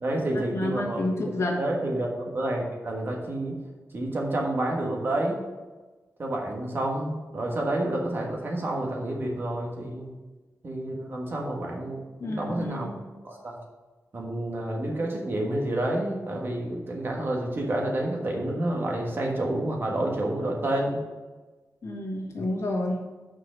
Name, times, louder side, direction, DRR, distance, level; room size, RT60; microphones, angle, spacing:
voice 1, 0.0-3.6 3.9-5.4 6.2-10.1 10.6-12.9 13.2-13.6 14.1-21.0, right 1 dB, 40° right, -1 dB, 1.4 m, -29 dB
voice 2, 0.5-1.6 12.2-13.0 21.8-23.0, left 1 dB, 60° left, -2 dB, 1.7 m, -29 dB
6.2 x 4.8 x 6.5 m, 1.2 s
wide cardioid pair, 175°, 6 cm